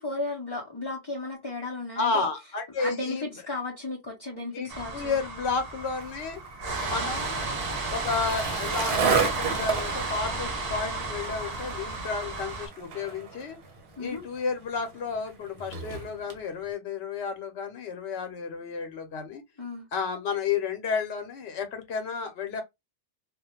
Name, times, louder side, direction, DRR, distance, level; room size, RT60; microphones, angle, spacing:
voice 1, 0.0-2.3 2.8-5.2 14.0-14.2 19.6-19.9, left 2 dB, 30° left, 0.5 m, -34 dB
voice 2, 2.0-3.4 4.5-6.4 6.8-7.4 7.9-13.6 14.0-19.4 19.9-22.6, left 5 dB, 70° left, 0.9 m, -32 dB
sound 1, 4.7-12.7, right 3 dB, 45° right, 0.6 m, -33 dB
Skateboard, 5.9-16.4, right 6 dB, 60° right, 0.9 m, -33 dB
2.3 x 2.1 x 2.9 m
omnidirectional pair, 1.1 m